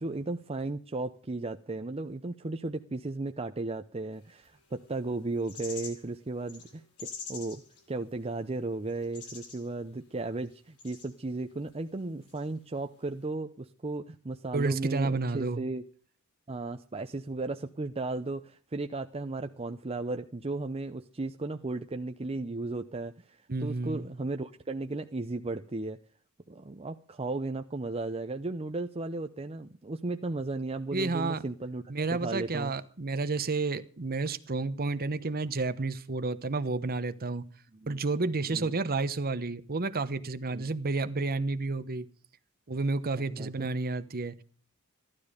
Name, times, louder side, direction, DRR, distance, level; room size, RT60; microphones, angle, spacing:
voice 1, 0.0-7.6 7.9-15.8 16.5-26.0 26.5-32.7 37.7-38.0 38.5-38.7 40.5-40.7 43.2-43.5, right 2 dB, 25° right, 0.6 m, -35 dB
sound 1, 4.4-6.1 6.3-8.1 8.5-8.6 8.9-9.7 10.1-11.1 11.6-11.7 12.2-12.4, left 5 dB, 90° left, 5.3 m, -45 dB
voice 2, 14.5-15.6 23.5-24.1 30.9-31.4 31.9-37.4 37.9-42.1 42.7-44.4, right 3 dB, 45° right, 1.0 m, -31 dB
15.0 x 12.0 x 5.0 m
head